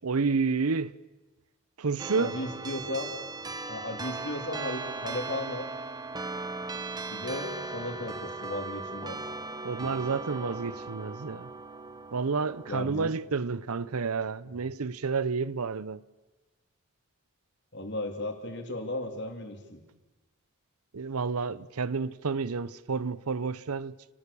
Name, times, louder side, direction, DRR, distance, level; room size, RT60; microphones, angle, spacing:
voice 1, 0.0-1.0 1.8-2.3 9.6-11.5 12.1-16.0 20.9-23.9, right 4 dB, 85° right, 0.7 m, -30 dB
sound 1, 2.0-12.8, right 3 dB, 15° right, 1.0 m, -38 dB
voice 2, 2.1-3.1 3.7-5.7 7.1-9.2 12.7-13.1 14.6-14.7 17.7-19.8, left 1 dB, 50° left, 3.2 m, -35 dB
29.5 x 19.0 x 7.0 m
head